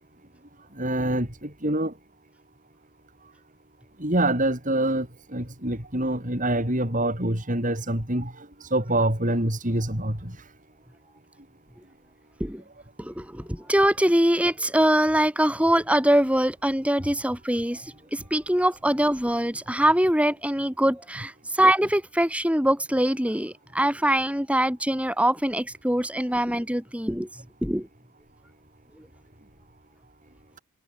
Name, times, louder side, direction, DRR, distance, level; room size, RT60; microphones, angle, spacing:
voice 1, 0.8-1.9 4.0-5.1 5.3-8.3 8.7-10.3, right 1 dB, 35° right, 5.5 m, -25 dB
voice 2, 13.0-27.3 27.6-27.9 29.0-29.1, right 1 dB, 5° right, 7.1 m, -23 dB
head